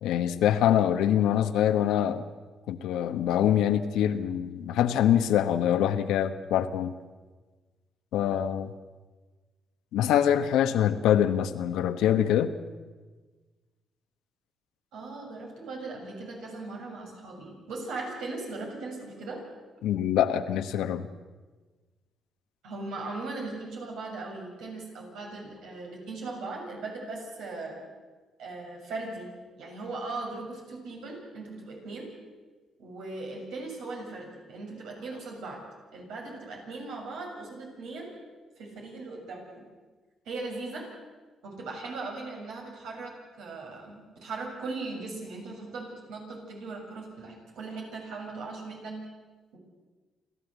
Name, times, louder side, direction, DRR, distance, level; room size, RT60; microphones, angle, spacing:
voice 1, 0.0-2.2 2.7-6.9 8.1-8.7 9.9-12.5 19.8-21.0, left 10 dB, 90° left, 9 dB, 1.2 m, -24 dB
voice 2, 14.9-19.4 22.6-27.8 28.4-32.1 32.8-35.6 35.9-38.2 38.6-39.6 40.3-40.8 41.4-49.0 49.5-49.6, right 3 dB, 85° right, -1 dB, 7.0 m, -39 dB
28.5 x 13.0 x 8.2 m, 1.4 s
cardioid pair, 90°, 0 cm